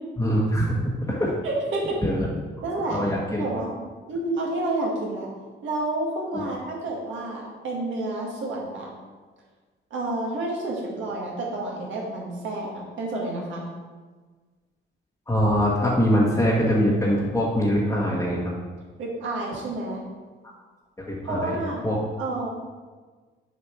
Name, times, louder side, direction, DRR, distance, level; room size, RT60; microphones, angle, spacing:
voice 1, 0.2-1.3 2.0-2.3 2.9-3.4 6.3-6.4 15.3-18.5 21.0-22.0, equal, 15° left, -5 dB, 1.3 m, -23 dB
voice 2, 1.4-2.0 2.6-3.0 3.4-3.7 4.1-5.3 5.6-8.9 9.9-13.7 19.0-20.0 21.2-21.8 22.2-22.5, right 2 dB, 75° right, -2 dB, 2.0 m, -29 dB
6.7 x 4.9 x 4.6 m, 1.4 s
cardioid pair, 90°, 20 cm